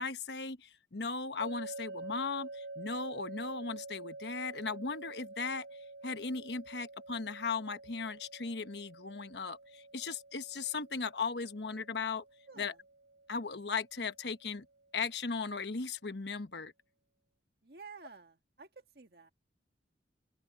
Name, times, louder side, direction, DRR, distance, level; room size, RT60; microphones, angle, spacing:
voice 1, 0.0-5.7 6.0-12.2 12.6-12.7 13.3-14.6 14.9-16.7, left 4 dB, 75° left, 1.1 m, -37 dB
sound 1, 1.4-14.5, right 2 dB, 85° right, 7.3 m, -48 dB
voice 2, 12.5-12.8 17.6-19.3, right 5 dB, 60° right, 1.8 m, -52 dB
open air
head